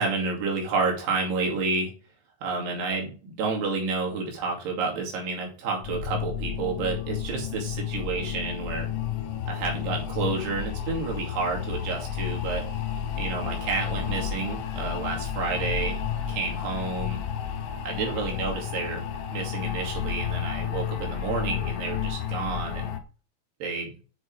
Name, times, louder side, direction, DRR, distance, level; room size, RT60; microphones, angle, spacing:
voice 1, 0.0-1.9 2.4-8.9 9.5-12.6 13.2-16.0 16.3-17.2 17.8-19.0 19.3-22.9 23.6-23.9, right 4 dB, 60° right, 0 dB, 4.2 m, -30 dB
sound 1, 5.8-23.0, left 9 dB, 90° left, 4.0 m, -31 dB
8.8 x 6.6 x 4.6 m, 0.36 s
omnidirectional pair, 5.9 m